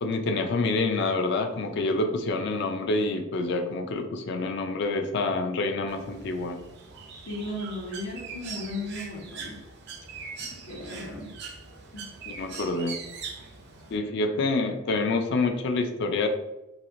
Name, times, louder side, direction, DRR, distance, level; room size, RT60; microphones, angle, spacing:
voice 1, 0.0-6.6 10.4-10.5 10.8-10.9 12.3-13.0 13.9-16.3, left 3 dB, 55° left, 6 dB, 0.4 m, -27 dB
Bird, 5.9-14.0, right 5 dB, 55° right, 0.5 m, -42 dB
voice 2, 7.2-9.6 10.6-11.3 11.9-12.0, left 1 dB, 90° left, -3 dB, 1.1 m, -36 dB
3.3 x 2.4 x 2.5 m, 0.94 s
head